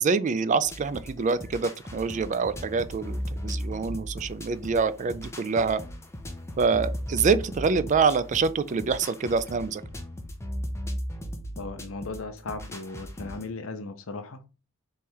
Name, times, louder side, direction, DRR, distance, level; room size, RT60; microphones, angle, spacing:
voice 1, 0.0-5.8 6.6-9.8, right 5 dB, 35° right, 0.3 m, -26 dB
sound 1, 0.6-13.5, equal, 15° left, 0.7 m, -37 dB
voice 2, 11.6-14.4, left 3 dB, 70° left, 0.7 m, -37 dB
3.5 x 3.2 x 4.5 m
head